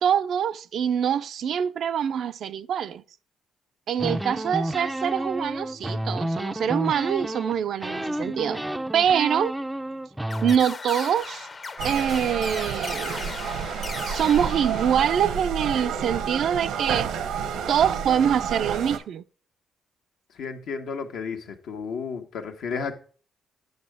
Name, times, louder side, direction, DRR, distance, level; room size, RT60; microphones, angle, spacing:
voice 1, 0.0-3.0 3.9-8.6 8.9-9.6 10.4-11.5 11.8-13.2 14.1-17.1 17.7-19.2, right 8 dB, 65° right, 0.4 m, -24 dB
sound 1, 4.0-7.5 7.8-10.6, right 1 dB, 10° right, 0.4 m, -30 dB
sound 2, 10.3-15.5, left 4 dB, 40° left, 0.8 m, -37 dB
sound 3, 11.8-19.0, right 7 dB, 85° right, 1.0 m, -30 dB
voice 2, 20.3-22.9, left 5 dB, 75° left, 1.3 m, -32 dB
8.7 x 6.6 x 3.4 m
cardioid pair, 90°, 0 cm